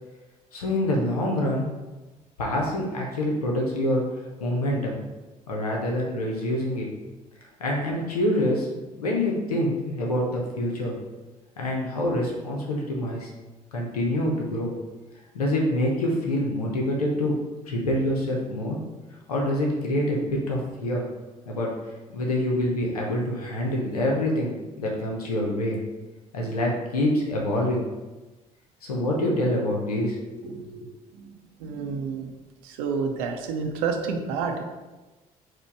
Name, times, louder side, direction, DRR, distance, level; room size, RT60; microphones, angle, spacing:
voice 1, 0.5-1.6 2.4-4.0 4.4-5.0 5.5-6.9 7.6-8.7 9.0-10.9 11.6-13.3 13.7-14.7 15.3-17.3 17.7-18.8 19.3-21.0 21.5-21.7 22.1-25.8 26.3-27.8 28.8-30.9, left 1 dB, 90° left, -2 dB, 0.6 m, -26 dB
voice 2, 31.6-32.3 32.6-34.6, right 5 dB, 75° right, 4 dB, 0.5 m, -29 dB
4.4 x 2.1 x 4.5 m, 1.1 s
figure-of-eight pair, 50°, 19 cm